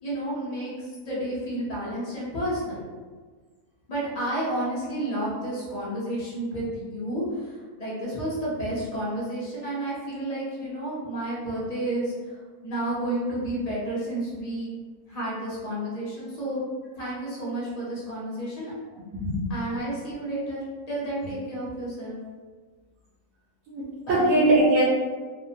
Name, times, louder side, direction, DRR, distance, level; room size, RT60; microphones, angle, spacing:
voice 1, 0.0-2.8 3.9-14.7 15.1-16.6 16.9-18.7 19.5-22.2 24.0-24.4, right 1 dB, 40° left, -7 dB, 0.5 m, -31 dB
voice 2, 19.1-19.5 23.7-24.8, right 1 dB, 85° right, -7 dB, 1.1 m, -21 dB
2.8 x 2.0 x 2.6 m, 1.5 s
omnidirectional pair, 1.6 m